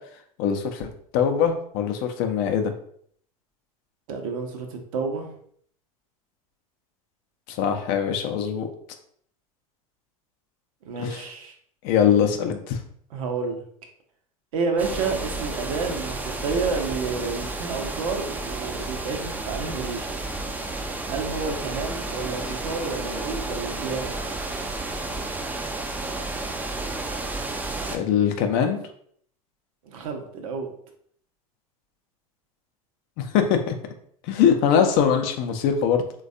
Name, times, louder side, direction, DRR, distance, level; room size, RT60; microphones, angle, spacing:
voice 1, 0.4-2.7 7.5-8.7 11.0-11.2 11.8-12.8 27.9-28.8 33.2-33.7 34.3-36.0, left 7 dB, 50° left, 6 dB, 0.5 m, -22 dB
voice 2, 4.1-5.3 10.8-11.5 13.1-13.6 14.5-20.1 21.1-24.2 29.8-30.7, right 4 dB, 65° right, 3 dB, 0.6 m, -30 dB
sound 1, 14.8-28.0, right 2 dB, 10° right, 0.3 m, -31 dB
3.3 x 2.2 x 2.5 m, 0.63 s
hypercardioid pair, 80°, 19 cm